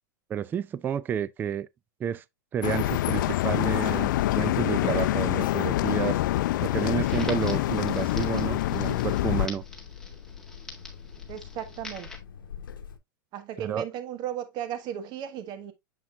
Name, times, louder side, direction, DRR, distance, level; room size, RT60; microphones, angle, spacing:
voice 1, 0.3-1.7 2.0-2.2 2.5-6.2 6.6-9.6 13.6-13.8, right 8 dB, 20° right, 0.3 m, -30 dB
sound 1, 2.6-9.5, left 15 dB, 65° left, 0.5 m, -26 dB
Alarm, 3.9-13.0, left 8 dB, 85° left, 0.9 m, -45 dB
Crackle, 7.1-12.2, left 3 dB, 5° left, 1.8 m, -45 dB
voice 2, 11.3-12.1 13.3-15.7, right 10 dB, 40° right, 1.5 m, -35 dB
7.3 x 5.8 x 2.4 m
hypercardioid pair, 130°, 11 cm